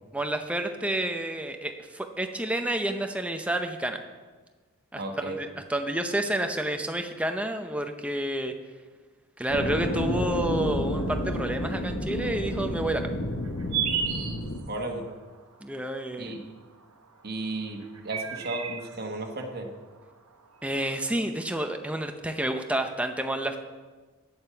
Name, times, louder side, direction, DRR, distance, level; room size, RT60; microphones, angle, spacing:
voice 1, 0.1-4.0 4.9-8.5 9.4-13.1 15.6-16.3 20.6-23.6, right 1 dB, 5° right, 5 dB, 0.7 m, -29 dB
voice 2, 5.0-5.4 14.7-15.1 16.2-16.4 17.2-19.7, right 2 dB, 45° right, 2 dB, 1.3 m, -34 dB
sound 1, 9.5-14.6, left 1 dB, 60° left, 1.4 m, -30 dB
sound 2, 10.6-21.3, right 8 dB, 85° right, 1.1 m, -38 dB
8.9 x 7.9 x 6.9 m, 1.3 s
head